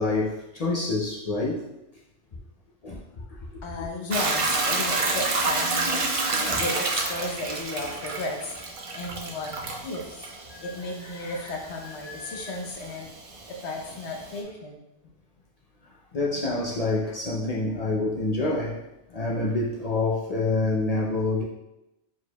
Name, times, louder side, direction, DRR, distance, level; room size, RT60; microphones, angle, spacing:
voice 1, 0.0-1.7 2.8-3.6 6.4-6.6 10.5-10.7 11.0-11.5 12.0-12.6 16.1-18.8 19.1-21.4, left 2 dB, 50° left, 0.4 m, -28 dB
voice 2, 3.6-9.5 9.8-10.3 10.6-13.1 13.5-14.9, left 2 dB, 75° left, 1.0 m, -34 dB
Hiss / Toilet flush / Trickle dribble, 4.1-14.4, right 3 dB, 50° right, 0.4 m, -29 dB
4.6 x 4.4 x 2.2 m
omnidirectional pair, 1.2 m